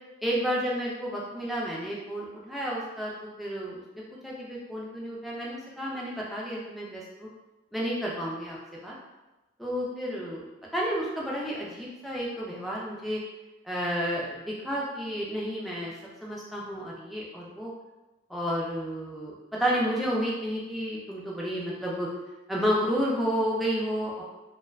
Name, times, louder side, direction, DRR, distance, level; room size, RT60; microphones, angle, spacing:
voice 1, 0.2-3.8 4.2-7.3 7.7-8.6 8.8-8.9 9.6-10.4 10.7-13.2 13.6-15.9 16.2-17.7 18.3-22.1 22.5-24.2, equal, ahead, -5 dB, 0.3 m, -31 dB
2.5 x 2.1 x 2.3 m, 1.1 s
head